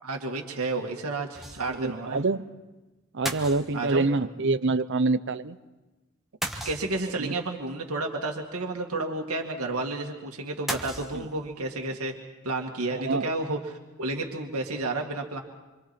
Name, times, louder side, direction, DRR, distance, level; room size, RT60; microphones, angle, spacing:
voice 1, 0.0-2.2 3.7-4.1 6.6-12.1 12.4-13.6 14.0-15.4, right 2 dB, 85° right, 1 dB, 2.1 m, -31 dB
sound 1, 1.3-1.9 2.2-2.3 3.2-4.1 6.4-7.3 10.7-11.6, right 1 dB, ahead, 1.3 m, -35 dB
voice 2, 1.8-2.4 3.1-5.6 7.2-7.3 11.1-11.3 12.9-13.3, right 3 dB, 55° right, 14 dB, 0.7 m, -26 dB
27.0 x 26.0 x 4.4 m, 1.1 s
head